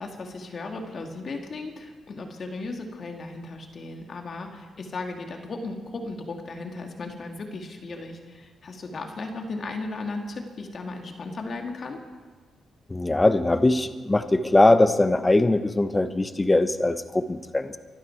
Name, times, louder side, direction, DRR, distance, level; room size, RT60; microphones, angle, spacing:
voice 1, 0.0-12.0, left 3 dB, 50° left, 3 dB, 2.3 m, -36 dB
voice 2, 12.9-17.8, left 2 dB, 20° left, 11 dB, 1.0 m, -21 dB
24.0 x 12.0 x 4.7 m, 1.4 s
cardioid pair, 70°, 0 cm